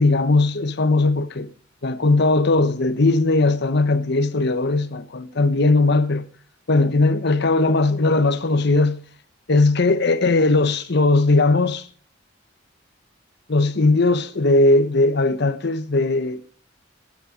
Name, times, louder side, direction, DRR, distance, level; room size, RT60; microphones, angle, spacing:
voice 1, 0.0-1.5 1.8-6.3 6.7-9.0 9.5-11.9 13.5-16.4, left 2 dB, 60° left, 0.9 m, -18 dB
12.0 x 9.5 x 5.0 m
head